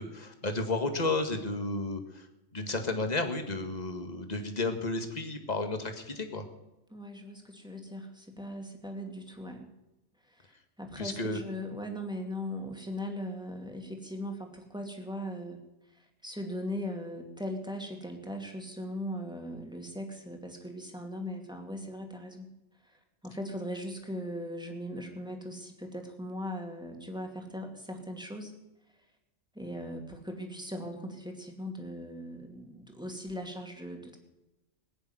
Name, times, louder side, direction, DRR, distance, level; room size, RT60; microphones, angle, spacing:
voice 1, 0.0-2.3 2.5-6.4 11.0-11.4, left 2 dB, 35° left, 5 dB, 1.8 m, -32 dB
voice 2, 6.9-9.7 10.2-15.6 15.9-22.5 22.8-28.5 29.5-34.2, equal, 5° right, 2 dB, 2.4 m, -39 dB
20.5 x 6.9 x 9.4 m, 0.97 s
omnidirectional pair, 1.3 m